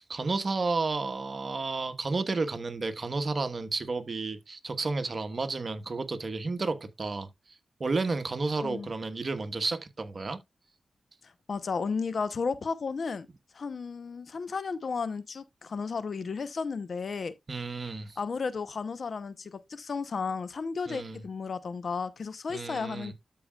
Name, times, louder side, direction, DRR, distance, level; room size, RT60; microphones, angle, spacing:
voice 1, 0.0-7.3 7.8-10.4 17.5-18.2 20.9-21.2 22.5-23.1, right 3 dB, 50° right, 1.2 m, -32 dB
voice 2, 11.2-13.3 13.5-17.3 18.2-23.1, left 5 dB, 65° left, 0.8 m, -33 dB
13.0 x 4.8 x 2.4 m
cardioid pair, 50°, 0 cm